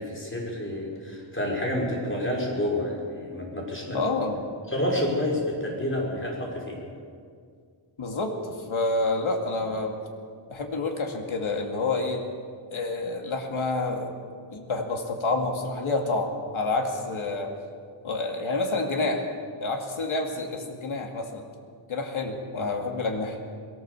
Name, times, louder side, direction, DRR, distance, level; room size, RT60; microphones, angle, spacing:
voice 1, 0.0-4.0 4.7-6.8, left 1 dB, 25° left, -2 dB, 6.0 m, -29 dB
voice 2, 3.9-4.4 8.0-9.9 10.5-12.2 12.7-14.1 14.5-17.5 18.0-19.3 19.6-21.4 21.9-23.4, left 3 dB, 85° left, 2 dB, 2.4 m, -28 dB
21.5 x 18.5 x 7.1 m, 2.2 s
wide cardioid pair, 100°, 47 cm